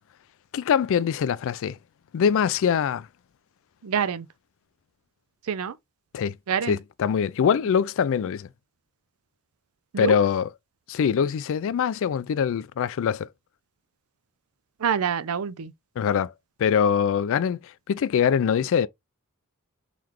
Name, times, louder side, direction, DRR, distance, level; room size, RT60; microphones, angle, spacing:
voice 1, 0.5-1.8 2.1-3.1 6.1-6.4 6.6-8.5 10.0-10.5 10.9-13.3 16.0-16.3 16.6-18.9, left 7 dB, 60° left, 0.3 m, -23 dB
voice 2, 3.8-4.3 5.5-5.7 6.5-6.8 9.9-10.2 14.8-15.7, right 7 dB, 75° right, 0.5 m, -26 dB
3.8 x 3.2 x 2.9 m
head